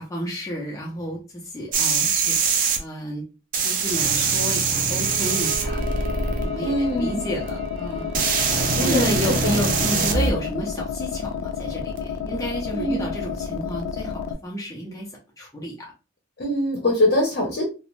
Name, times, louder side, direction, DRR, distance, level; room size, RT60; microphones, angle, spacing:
voice 1, 0.0-3.2 3.6-5.9 6.4-8.1 8.8-15.9, equal, 15° left, -3 dB, 0.6 m, -31 dB
sound 1, 1.7-2.8 3.5-6.4 7.5-7.6 8.1-10.3 12.0-12.1, right 5 dB, 45° right, 0.5 m, -23 dB
Bowed string instrument, 4.9-9.2, right 5 dB, 85° right, 0.8 m, -37 dB
sound 2, 5.7-14.3, left 7 dB, 75° left, 0.3 m, -31 dB
voice 2, 6.6-7.2 8.8-9.6 12.7-13.1 16.4-17.6, left 1 dB, 55° left, -1 dB, 0.8 m, -23 dB
2.5 x 2.1 x 3.1 m, 0.31 s
head